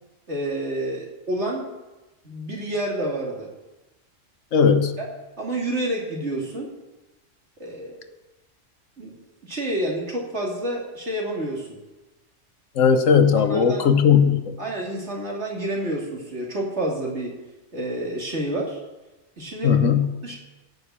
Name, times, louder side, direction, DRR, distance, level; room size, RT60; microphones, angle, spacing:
voice 1, 0.3-1.7 2.2-3.5 4.6-4.7 5.0-5.1 5.4-6.7 7.6-8.1 9.0-9.1 9.4-11.8 13.3-13.9 14.6-17.4 17.7-18.8 19.4-19.7 20.2-20.3, right 1 dB, 60° right, -2 dB, 3.1 m, -29 dB
voice 2, 4.5-4.9 12.8-14.6 19.6-20.1, left 7 dB, 90° left, 9 dB, 1.4 m, -17 dB
14.5 x 6.6 x 8.6 m, 1.1 s
omnidirectional pair, 1.3 m